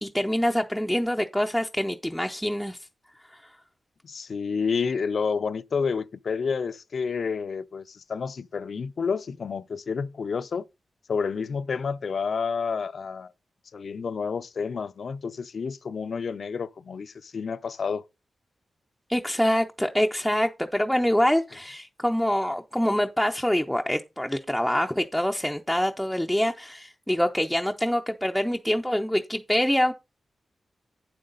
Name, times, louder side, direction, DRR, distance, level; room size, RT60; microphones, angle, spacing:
voice 1, 0.0-2.8 3.4-3.5 19.1-29.9, equal, ahead, 0.5 m, -25 dB
voice 2, 4.0-10.7 11.1-13.3 13.7-18.0, left 5 dB, 55° left, 0.5 m, -29 dB
8.8 x 7.7 x 3.8 m
wide cardioid pair, 150°, 0 cm